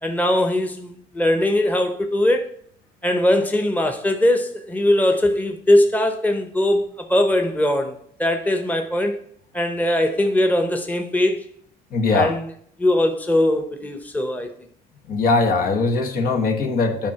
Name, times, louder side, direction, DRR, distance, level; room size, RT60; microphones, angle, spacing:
voice 1, 0.0-2.5 3.0-9.2 9.5-11.5 12.1-12.5 12.8-14.5, left 1 dB, 10° left, 1.0 m, -20 dB
voice 2, 11.9-12.4 15.1-17.1, left 3 dB, 60° left, 1.4 m, -20 dB
9.4 x 4.3 x 5.8 m
cardioid pair, 110°, 17 cm